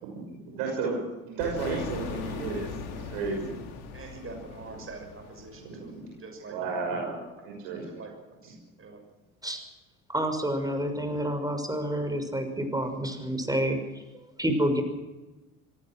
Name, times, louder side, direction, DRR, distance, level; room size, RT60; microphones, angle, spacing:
voice 1, 0.0-3.6 5.6-6.2 6.5-8.0, right 4 dB, 70° right, 0 dB, 6.1 m, -33 dB
sound 1, 1.4-6.1, left 5 dB, 65° left, 4.0 m, -39 dB
voice 2, 3.9-5.9 6.2-6.7 7.8-8.1 8.4-9.0, right 3 dB, 30° right, 4 dB, 6.5 m, -44 dB
voice 3, 10.1-14.0 14.4-14.8, equal, 10° right, 7 dB, 6.0 m, -28 dB
25.0 x 18.5 x 6.2 m, 1.1 s
hypercardioid pair, 60°, 42 cm